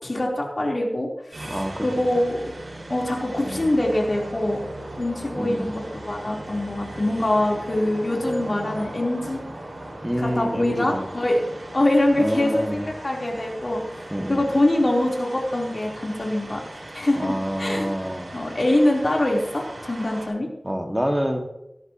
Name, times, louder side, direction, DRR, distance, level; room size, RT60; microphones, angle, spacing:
voice 1, 0.0-1.1 1.3-2.4 2.9-4.6 5.0-9.4 10.2-11.4 11.7-16.6 16.9-17.9 18.3-20.5, left 1 dB, 50° left, -2 dB, 4.3 m, -24 dB
sound 1, 1.3-20.3, right 1 dB, 70° right, 5.9 m, -38 dB
voice 2, 1.5-1.9 2.1-2.2 3.4-3.8 5.4-5.8 10.0-11.1 12.2-12.9 14.1-14.5 17.2-18.4 20.6-21.4, equal, 5° right, 3 dB, 2.3 m, -27 dB
18.0 x 13.5 x 3.2 m, 0.85 s
wide cardioid pair, 50°, 0 cm